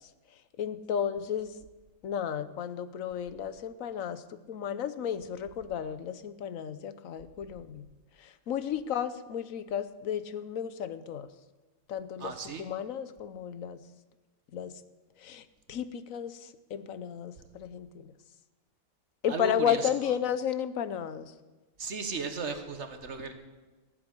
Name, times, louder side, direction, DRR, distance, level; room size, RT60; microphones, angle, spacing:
voice 1, 0.6-1.6 2.0-7.9 8.2-11.3 11.9-13.8 14.5-14.8 15.2-18.1 19.2-21.3, left 8 dB, 90° left, 13 dB, 1.2 m, -33 dB
voice 2, 12.2-12.6 19.3-19.8 21.8-23.3, right 4 dB, 60° right, 7 dB, 1.7 m, -35 dB
15.5 x 7.7 x 9.9 m, 1.2 s
omnidirectional pair, 1.4 m